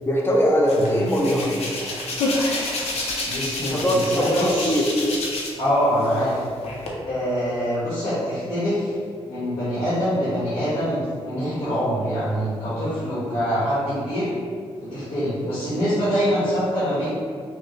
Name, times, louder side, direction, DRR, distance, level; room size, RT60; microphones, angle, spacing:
voice 1, 0.1-1.7 3.6-4.9, equal, 20° left, -1 dB, 0.5 m, -21 dB
Hands, 0.7-5.7 6.0-6.9, left 2 dB, 80° left, 0.7 m, -28 dB
voice 2, 3.2-4.9 5.6-6.4 7.0-9.0 9.2-14.3 14.8-17.1, equal, 60° left, -11 dB, 1.3 m, -24 dB
5.3 x 2.0 x 3.1 m, 2.1 s
wide cardioid pair, 145°, 11 cm